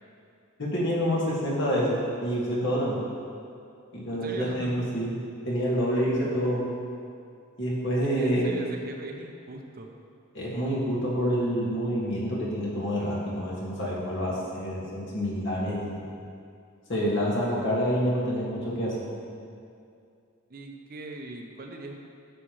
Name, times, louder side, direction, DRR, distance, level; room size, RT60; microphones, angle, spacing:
voice 1, 0.6-3.0 3.9-5.1 5.5-6.6 7.6-8.5 10.3-16.1 16.9-19.2, equal, 60° left, -6 dB, 2.0 m, -27 dB
voice 2, 4.1-4.8 8.0-9.9 20.5-22.0, right 2 dB, 45° right, 3 dB, 0.7 m, -40 dB
9.9 x 6.8 x 3.1 m, 2.4 s
head